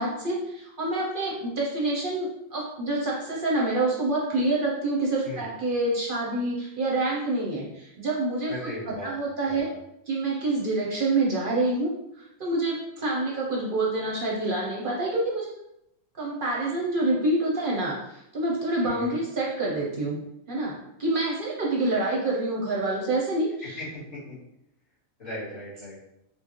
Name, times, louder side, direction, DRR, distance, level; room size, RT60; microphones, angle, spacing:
voice 1, 0.0-9.7 10.1-11.9 12.2-15.5 16.2-20.2 20.5-23.8, right 2 dB, 50° right, -3 dB, 0.7 m, -27 dB
voice 2, 8.5-9.1 9.5-9.7 18.8-19.2 23.6-24.4 25.2-26.0, left 1 dB, 45° left, -8 dB, 1.7 m, -38 dB
4.4 x 2.1 x 3.0 m, 0.81 s
omnidirectional pair, 1.4 m